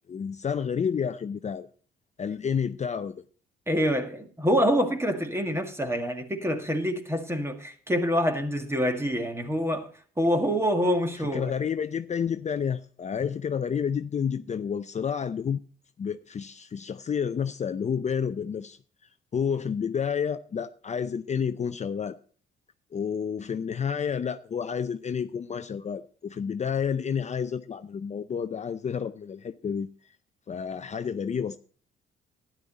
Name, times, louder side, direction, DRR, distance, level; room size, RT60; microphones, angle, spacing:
voice 1, 0.1-1.7 2.2-3.2 11.2-15.6 16.0-18.8 19.3-22.2 22.9-29.9 30.5-31.6, left 7 dB, 35° left, 0.6 m, -30 dB
voice 2, 3.7-9.9 10.2-11.5, equal, 15° right, 1.9 m, -26 dB
12.5 x 10.5 x 4.0 m
cardioid pair, 90°, 20 cm